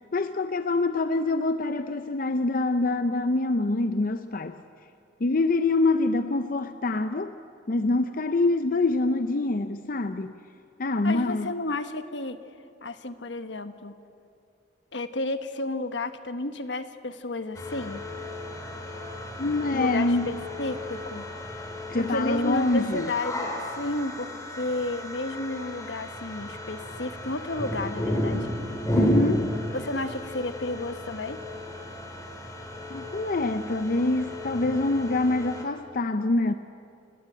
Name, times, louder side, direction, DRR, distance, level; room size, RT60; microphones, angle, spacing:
voice 1, 0.1-4.6 5.2-7.3 7.7-10.3 10.8-11.5 19.4-20.4 21.9-23.1 28.9-29.5 32.9-36.5, left 2 dB, 50° left, 9 dB, 0.6 m, -25 dB
voice 2, 11.0-12.4 12.8-14.0 14.9-18.0 19.7-21.3 22.0-24.3 24.6-28.4 29.7-31.4, left 2 dB, 75° left, 10 dB, 1.2 m, -32 dB
sound 1, 17.5-35.6, left 1 dB, 20° left, 3.4 m, -33 dB
29.5 x 16.5 x 8.9 m, 2.6 s
head